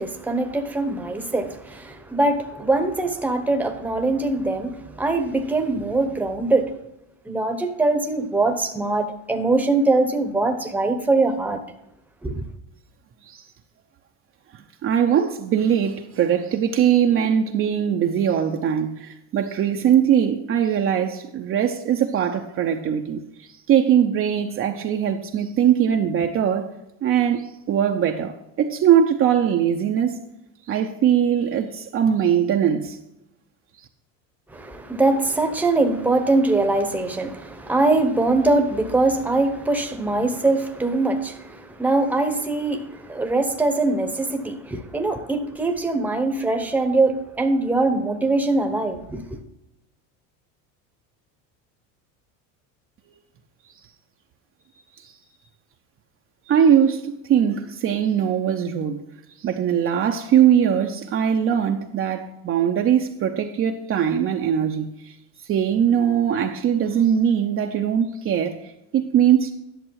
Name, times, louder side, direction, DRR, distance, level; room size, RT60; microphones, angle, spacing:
voice 1, 0.0-6.7 7.3-11.6 12.2-12.4 34.5-49.2, right 2 dB, 5° right, 1.0 m, -22 dB
voice 2, 14.5-26.7 27.0-30.2 30.7-33.0 55.0-55.1 56.5-59.0 59.4-65.1 65.5-69.5, right 9 dB, 35° right, 0.7 m, -21 dB
11.0 x 6.7 x 4.7 m
cardioid pair, 130°, 38 cm